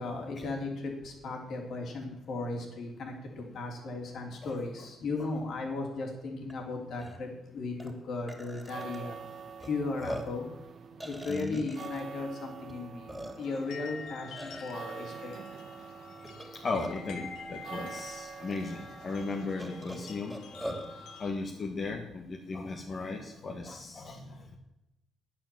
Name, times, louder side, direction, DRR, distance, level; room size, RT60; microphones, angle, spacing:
voice 1, 0.0-10.5 11.0-15.4, left 3 dB, 65° left, 1 dB, 3.2 m, -36 dB
Burping eructation, 6.5-6.6 7.0-7.2 7.8-7.9 8.3-9.0 9.6-9.7 10.0-10.4 11.0-12.0 12.7-12.8 13.1-13.6 14.4-14.7 16.2-17.1 18.0-18.1 18.5-18.6 19.6-20.9, equal, ahead, 3.2 m, -41 dB
sound 1, 8.5-22.0, right 6 dB, 60° right, 1.0 m, -47 dB
voice 2, 11.3-11.7 16.6-20.4 21.2-24.6, left 3 dB, 45° left, 1 dB, 1.5 m, -36 dB
sound 2, 13.4-21.3, left 5 dB, 85° left, 2.3 m, -47 dB
10.0 x 8.9 x 7.6 m, 0.91 s
cardioid pair, 90°, 0 cm